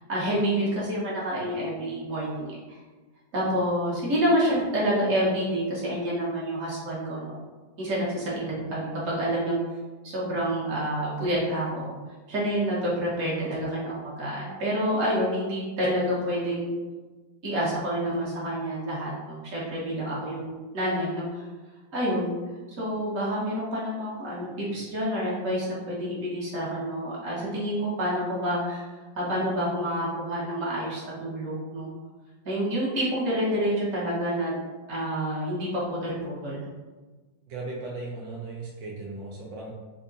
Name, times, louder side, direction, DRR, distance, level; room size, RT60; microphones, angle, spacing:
voice 1, 0.0-2.8 3.3-7.4 7.8-9.6 10.0-11.9 12.3-16.7 17.4-21.5 21.9-22.3 22.8-28.8 29.1-31.9 32.4-34.5 34.9-36.7, equal, 50° right, -7 dB, 1.4 m, -28 dB
voice 2, 37.5-39.7, right 3 dB, 80° right, -3 dB, 1.4 m, -37 dB
3.6 x 2.2 x 3.7 m, 1.3 s
omnidirectional pair, 2.1 m